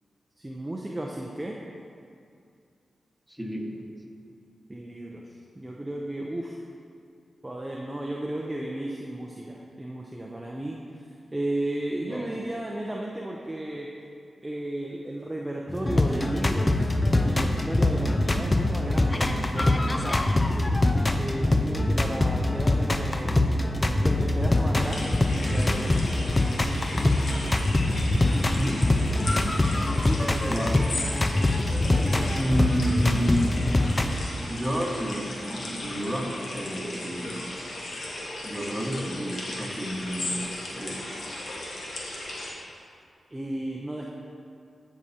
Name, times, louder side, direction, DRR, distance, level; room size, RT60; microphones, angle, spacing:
voice 1, 0.4-1.6 4.7-6.5 7.4-10.8 11.3-13.9 14.4-26.2 26.7-26.9 29.9-30.6 43.3-44.1, right 1 dB, 20° right, -2 dB, 0.6 m, -34 dB
voice 2, 3.3-3.9 12.1-12.3 28.5-28.8 30.5-30.7 32.3-33.4 34.4-37.5 38.4-40.5 40.7-41.0, equal, 5° right, -2 dB, 1.6 m, -30 dB
sound 1, 15.7-34.1, left 1 dB, 30° left, 0.5 m, -24 dB
sound 2, 24.7-42.5, left 1 dB, 75° left, 1.2 m, -36 dB
14.0 x 4.8 x 2.8 m, 2.5 s
cardioid pair, 45°, 0 cm